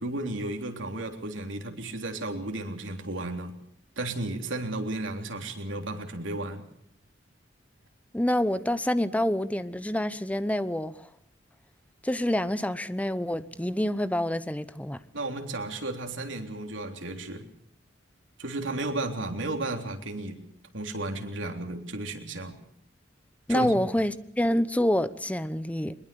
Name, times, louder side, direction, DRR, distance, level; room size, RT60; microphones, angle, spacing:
voice 1, 0.0-3.5 4.0-6.7 15.1-17.5 18.4-20.4 20.7-22.6 23.5-23.8, right 2 dB, 90° right, 3.5 m, -33 dB
voice 2, 8.1-11.1 12.0-15.0 23.5-25.9, left 1 dB, 10° left, 0.9 m, -27 dB
23.0 x 21.0 x 6.9 m
head